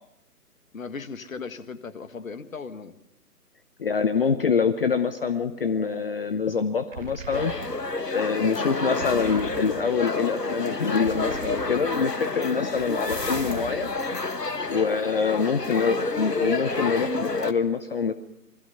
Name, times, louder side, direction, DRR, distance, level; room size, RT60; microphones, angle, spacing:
voice 1, 0.7-2.9 15.1-15.4, left 5 dB, 55° left, 12 dB, 1.7 m, -37 dB
voice 2, 3.8-7.5 8.1-13.9 14.7-18.1, left 5 dB, 35° left, 12 dB, 0.9 m, -25 dB
sound 1, 6.9-8.0 9.0-10.1 11.0-12.1 13.1-14.2, right 5 dB, 55° right, 1.5 m, -41 dB
sound 2, 7.3-17.5, left 3 dB, 85° left, 1.6 m, -29 dB
28.0 x 22.0 x 5.7 m, 0.86 s
figure-of-eight pair, 140°, 47 cm